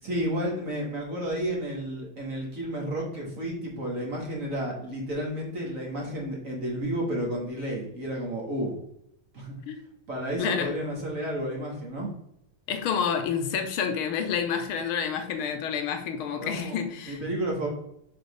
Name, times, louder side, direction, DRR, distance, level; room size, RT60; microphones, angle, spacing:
voice 1, 0.0-8.8 9.3-9.5 10.1-12.1 16.4-17.7, equal, 40° right, -2 dB, 1.8 m, -31 dB
voice 2, 10.4-10.7 12.7-17.2, left 7 dB, 85° left, 6 dB, 1.6 m, -29 dB
5.1 x 4.3 x 5.4 m, 0.75 s
omnidirectional pair, 2.3 m